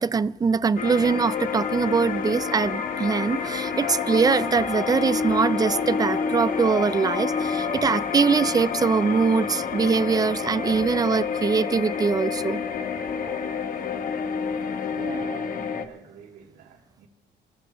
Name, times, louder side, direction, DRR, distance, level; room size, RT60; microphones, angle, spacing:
voice 1, 0.0-12.6 13.3-13.4, right 5 dB, 20° right, 0.5 m, -23 dB
sound 1, 0.8-15.8, left 6 dB, 55° left, 1.0 m, -28 dB
voice 2, 14.8-17.1, right 6 dB, 80° right, 3.0 m, -43 dB
30.0 x 14.5 x 3.1 m
cardioid pair, 110°, 17 cm